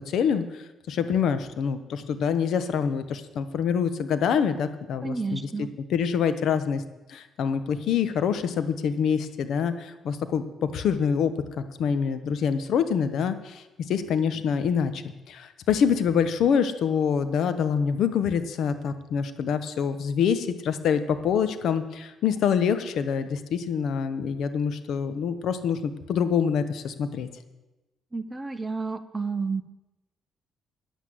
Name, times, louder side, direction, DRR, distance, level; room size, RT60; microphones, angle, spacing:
voice 1, 0.1-5.4 5.9-6.8 7.1-27.3, left 7 dB, 75° left, 11 dB, 1.1 m, -26 dB
voice 2, 5.0-5.7 28.1-29.6, right 4 dB, 20° right, 10 dB, 0.9 m, -30 dB
10.5 x 8.3 x 7.7 m, 1.0 s
cardioid pair, 90°, 0 cm